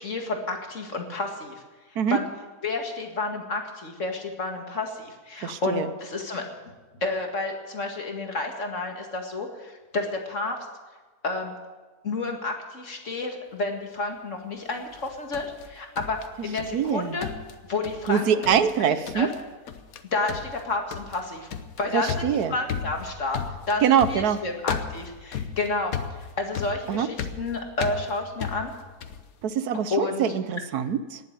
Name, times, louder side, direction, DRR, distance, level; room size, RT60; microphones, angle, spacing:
voice 1, 0.0-1.6 1.9-2.3 2.6-6.4 7.0-10.6 11.2-11.5 12.0-17.3 17.7-19.3 20.1-21.5 21.8-28.7 29.9-30.3, left 3 dB, 50° left, 3 dB, 2.3 m, -30 dB
voice 2, 5.4-5.9 16.7-17.2 18.1-19.3 21.9-22.5 23.8-24.4 26.9-27.1 29.4-31.2, right 8 dB, 80° right, 13 dB, 1.3 m, -24 dB
sound 1, 14.9-16.9 17.2-18.1 18.4-18.8 19.1-19.4 19.7-20.0 20.3-29.3, left 7 dB, 70° left, 1.4 m, -35 dB
18.5 x 7.8 x 9.5 m, 1.3 s
omnidirectional pair, 1.6 m